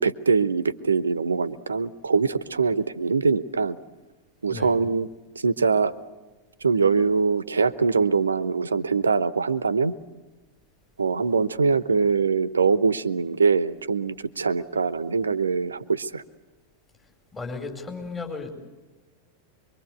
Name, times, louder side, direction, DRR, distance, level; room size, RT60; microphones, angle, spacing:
voice 1, 0.0-3.8 4.4-5.1 5.4-5.9 6.6-9.9 11.0-16.2, right 5 dB, 75° right, 18 dB, 0.9 m, -23 dB
voice 2, 17.3-18.5, left 4 dB, 15° left, 3 dB, 4.8 m, -34 dB
24.0 x 24.0 x 8.1 m, 1.2 s
figure-of-eight pair, 90°, 0 cm